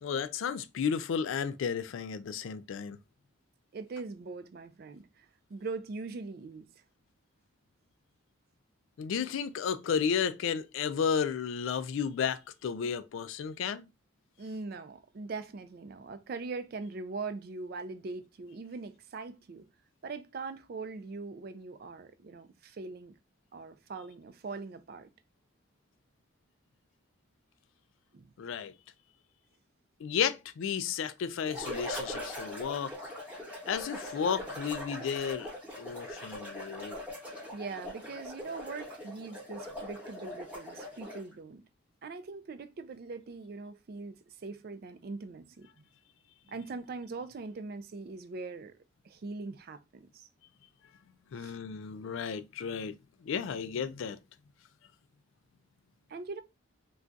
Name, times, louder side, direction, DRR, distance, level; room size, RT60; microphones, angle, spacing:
voice 1, 0.0-3.0 9.0-13.9 28.4-28.7 30.0-33.1 33.7-37.0 51.3-53.0 53.2-54.2, left 7 dB, 65° left, 0.3 m, -33 dB
voice 2, 3.7-6.7 14.4-19.7 20.0-23.1 23.5-25.1 28.1-28.3 37.5-41.6 42.0-45.8 46.5-48.8 49.0-50.3 51.4-51.6 56.1-56.4, right 4 dB, 45° right, 0.3 m, -41 dB
sound 1, 31.4-41.3, left 1 dB, 5° right, 0.9 m, -41 dB
2.3 x 2.3 x 3.8 m
head